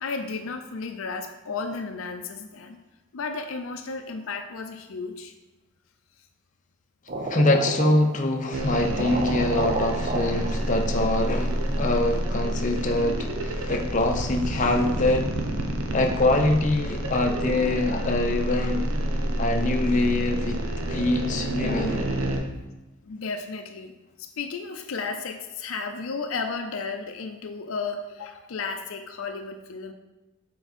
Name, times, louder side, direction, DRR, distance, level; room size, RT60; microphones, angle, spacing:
voice 1, 0.0-2.8 3.1-5.3 23.0-23.9 24.2-29.9, left 4 dB, 75° left, 6 dB, 0.5 m, -33 dB
sound 1, 7.1-8.4 8.7-8.8 9.0-11.2, right 2 dB, 40° right, 0.6 m, -32 dB
voice 2, 7.2-15.3 15.9-18.8 19.4-20.6 20.9-22.1, left 2 dB, 35° left, 3 dB, 0.7 m, -24 dB
sound 2, 8.5-22.4, right 1 dB, 75° right, 0.8 m, -28 dB
7.0 x 4.6 x 4.1 m, 1.0 s
head